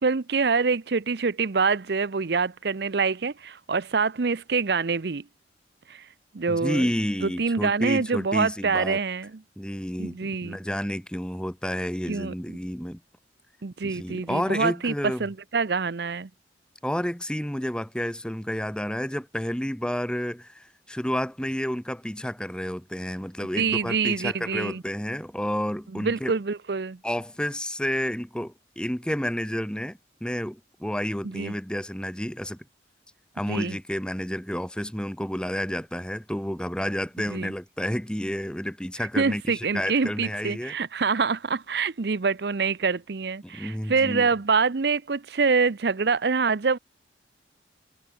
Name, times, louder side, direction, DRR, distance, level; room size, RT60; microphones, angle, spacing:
voice 1, 0.0-5.2 5.9-6.1 6.3-6.9 7.2-9.4 10.0-10.6 12.1-12.3 13.6-16.3 23.5-24.8 25.9-27.0 31.2-31.5 33.5-33.8 37.3-37.5 39.2-46.8, right 4 dB, 65° right, 0.6 m, -25 dB
voice 2, 6.5-9.0 9.6-13.0 13.8-15.2 16.8-26.4 27.0-32.6 33.3-40.8 43.4-44.3, equal, 5° left, 1.1 m, -30 dB
head